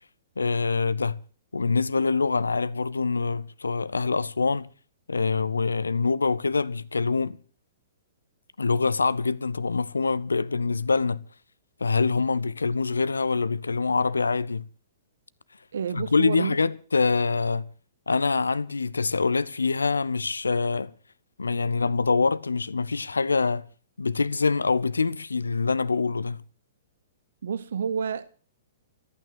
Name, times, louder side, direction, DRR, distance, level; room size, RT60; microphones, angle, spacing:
voice 1, 0.4-1.2 1.5-4.7 5.1-7.4 8.6-11.2 11.8-14.7 15.9-17.7 18.1-20.9 21.4-23.7 24.0-26.4, left 4 dB, 80° left, 0.7 m, -25 dB
voice 2, 15.7-16.5 27.4-28.3, right 7 dB, 65° right, 0.8 m, -29 dB
14.0 x 9.1 x 8.8 m
figure-of-eight pair, 115°, 0 cm